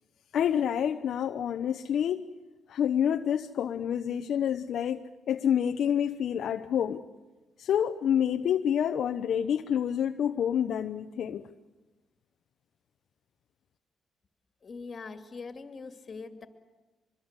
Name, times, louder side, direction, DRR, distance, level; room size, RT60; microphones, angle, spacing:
voice 1, 0.3-2.3 2.7-7.0 7.6-11.5, left 9 dB, 65° left, 6 dB, 0.9 m, -28 dB
voice 2, 14.6-16.5, left 4 dB, 40° left, 7 dB, 2.4 m, -42 dB
25.5 x 22.0 x 8.2 m, 1.2 s
cardioid pair, 90°, 0 cm